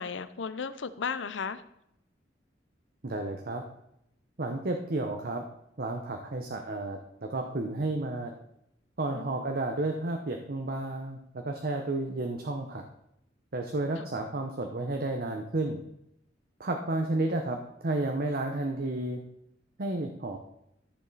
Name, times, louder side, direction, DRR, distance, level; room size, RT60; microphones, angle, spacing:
voice 1, 0.0-1.6 9.1-9.4 14.0-14.1, left 5 dB, 90° left, 14 dB, 0.6 m, -35 dB
voice 2, 3.0-3.6 4.4-5.4 5.8-8.3 9.0-12.8 13.5-15.8 16.6-19.2 19.8-20.4, right 2 dB, 55° right, 3 dB, 0.9 m, -32 dB
14.0 x 7.1 x 4.1 m, 0.78 s
head